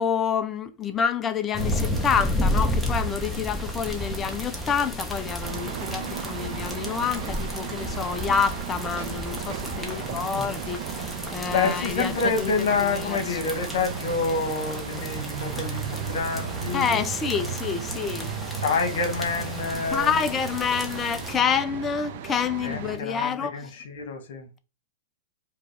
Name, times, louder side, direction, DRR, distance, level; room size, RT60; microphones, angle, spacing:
voice 1, 0.0-12.5 12.8-13.4 16.7-18.6 19.9-23.7, left 7 dB, 20° left, 0.5 m, -28 dB
sound 1, 1.5-21.4, left 1 dB, ahead, 0.9 m, -33 dB
sound 2, 5.4-23.0, right 8 dB, 55° right, 0.6 m, -35 dB
voice 2, 9.8-10.3 11.5-16.8 18.6-20.2 22.6-24.5, left 4 dB, 70° left, 1.4 m, -28 dB
4.9 x 2.4 x 3.3 m
hypercardioid pair, 140°, 0 cm